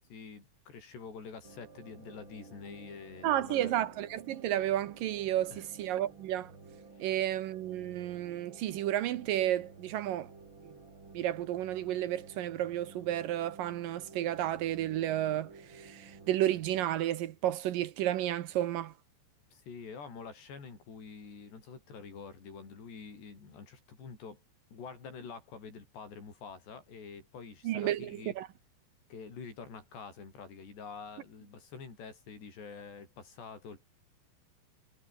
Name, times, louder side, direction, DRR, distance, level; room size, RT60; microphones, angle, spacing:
voice 1, 0.1-3.8 5.5-5.7 6.9-7.1 19.5-24.4 24.7-28.4 29.1-33.9, left 5 dB, 65° left, 9.0 m, -47 dB
sound 1, 1.4-16.9, right 4 dB, 25° right, 4.5 m, -53 dB
voice 2, 3.2-6.5 7.0-10.3 11.1-18.9 27.6-28.5, right 13 dB, 75° right, 2.1 m, -32 dB
omnidirectional pair, 5.3 m